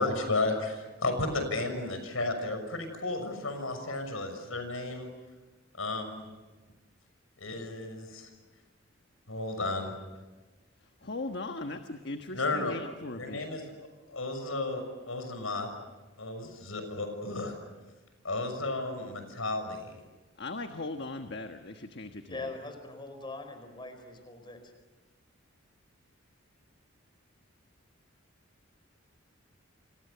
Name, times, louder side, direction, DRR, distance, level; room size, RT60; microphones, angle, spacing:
voice 1, 0.0-5.1 5.8-6.3 7.4-8.3 9.3-10.0 12.3-12.8 13.2-13.6 14.1-15.7 16.2-17.5 18.2-20.0, left 2 dB, 80° left, 7 dB, 6.3 m, -33 dB
voice 2, 11.0-13.4 20.4-22.5, left 2 dB, 55° left, 6 dB, 1.4 m, -39 dB
voice 3, 22.3-24.7, left 2 dB, 25° left, 7 dB, 4.6 m, -42 dB
30.0 x 27.5 x 6.9 m, 1.2 s
head